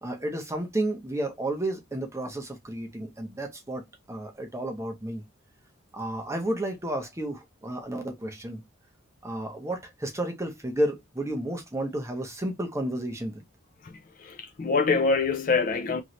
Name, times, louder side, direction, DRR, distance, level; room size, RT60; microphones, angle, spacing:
voice 1, 0.0-5.2 5.9-8.6 9.2-13.4, right 1 dB, 15° right, 0.6 m, -32 dB
voice 2, 13.8-16.0, left 4 dB, 40° left, 0.4 m, -25 dB
3.0 x 2.7 x 3.0 m
head